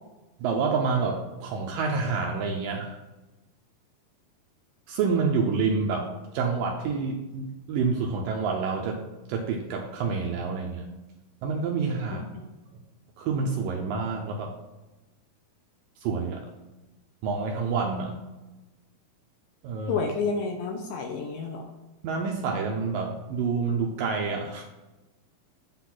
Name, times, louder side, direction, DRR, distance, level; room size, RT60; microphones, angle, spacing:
voice 1, 0.4-3.0 4.9-6.1 6.3-9.0 9.3-10.9 11.4-12.3 13.2-14.5 16.0-16.5 17.2-18.2 19.6-20.0 22.0-24.6, right 4 dB, 75° right, 1 dB, 2.1 m, -28 dB
voice 2, 19.9-21.7, left 4 dB, 75° left, 3 dB, 2.2 m, -30 dB
8.1 x 4.1 x 5.8 m, 1.1 s
omnidirectional pair, 4.6 m